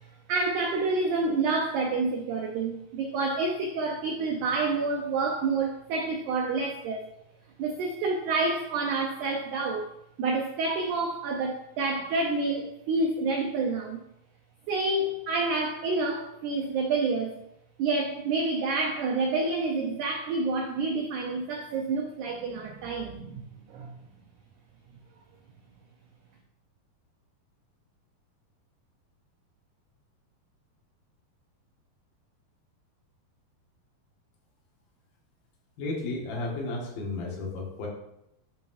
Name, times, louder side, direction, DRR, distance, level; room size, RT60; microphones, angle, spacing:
voice 1, 0.3-7.1 7.6-9.9 10.2-14.0 14.7-17.4 17.8-23.9, right 3 dB, 85° right, 2 dB, 1.7 m, -28 dB
voice 2, 35.8-37.9, left 2 dB, 75° left, -2 dB, 3.4 m, -33 dB
10.5 x 5.7 x 2.6 m, 0.81 s
omnidirectional pair, 4.3 m